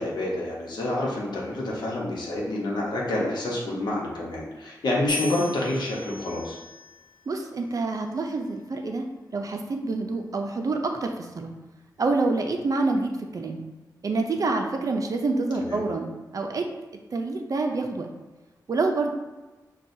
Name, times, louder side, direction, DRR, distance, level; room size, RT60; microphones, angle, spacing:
voice 1, 0.0-6.6 15.6-15.8, left 1 dB, 75° left, -3 dB, 1.0 m, -28 dB
sound 1, 5.1-7.3 8.1-8.6, left 3 dB, 20° left, 1.2 m, -38 dB
voice 2, 7.3-9.1 9.3-11.5 12.0-13.6 14.0-16.7 17.1-18.1 18.7-19.1, right 3 dB, 50° right, 4 dB, 0.5 m, -27 dB
6.0 x 2.3 x 2.6 m, 1.1 s
wide cardioid pair, 125°, 7 cm